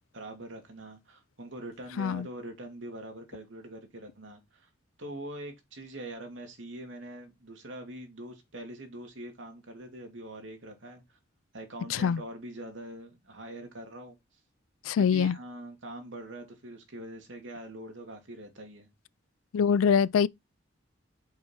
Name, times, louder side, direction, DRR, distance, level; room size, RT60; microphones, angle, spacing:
voice 1, 0.1-4.7 5.0-11.2 11.5-14.2 15.0-18.9, right 1 dB, 70° right, 2.2 m, -43 dB
voice 2, 11.9-12.2 14.8-15.4 19.5-20.3, left 7 dB, 90° left, 0.3 m, -24 dB
5.6 x 4.4 x 5.4 m
head